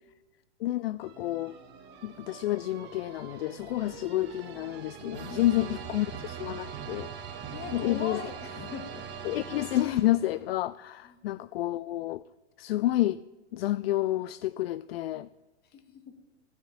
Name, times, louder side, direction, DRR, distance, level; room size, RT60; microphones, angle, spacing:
voice 1, 0.6-1.6 2.0-7.1 7.7-8.2 9.2-12.2 12.6-13.2 13.5-15.3, left 15 dB, 60° left, 18 dB, 0.5 m, -29 dB
sound 1, 1.0-10.5, right 7 dB, 30° right, 2.0 m, -42 dB
voice 2, 5.2-5.9 7.5-9.0 11.0-11.2 15.7-16.2, left 6 dB, 30° left, 6 dB, 2.2 m, -40 dB
15.0 x 7.1 x 8.6 m, 1.1 s
hypercardioid pair, 120°, 34 cm